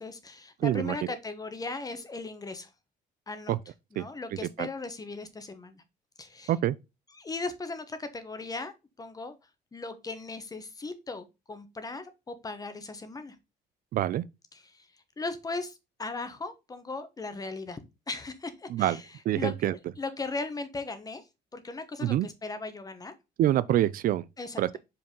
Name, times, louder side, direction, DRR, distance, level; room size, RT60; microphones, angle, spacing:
voice 1, 0.0-2.7 3.3-3.5 3.9-5.8 6.2-6.5 7.1-8.7 9.0-9.3 9.7-13.4 14.5-17.8 18.1-21.3 21.5-23.1 24.4-24.8, left 3 dB, 20° left, 1.2 m, -38 dB
voice 2, 0.6-0.9 3.5-3.6 4.0-4.1 4.6-4.7 6.5-6.7 13.9-14.2 18.7-19.0 19.3-19.7 22.0-22.3 23.4-24.2 24.6-24.8, right 13 dB, 55° right, 0.4 m, -25 dB
5.3 x 4.6 x 5.3 m
cardioid pair, 110°, 17 cm